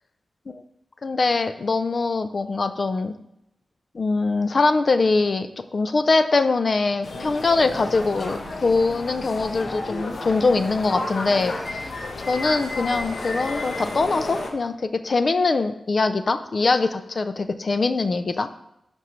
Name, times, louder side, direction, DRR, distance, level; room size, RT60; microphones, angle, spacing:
voice 1, 1.0-3.1 3.9-11.9 12.2-18.5, left 3 dB, 55° left, 9 dB, 0.5 m, -22 dB
sound 1, 7.0-14.5, left 2 dB, 70° left, 1.1 m, -32 dB
11.5 x 5.2 x 3.2 m, 0.82 s
wide cardioid pair, 75°, 0 cm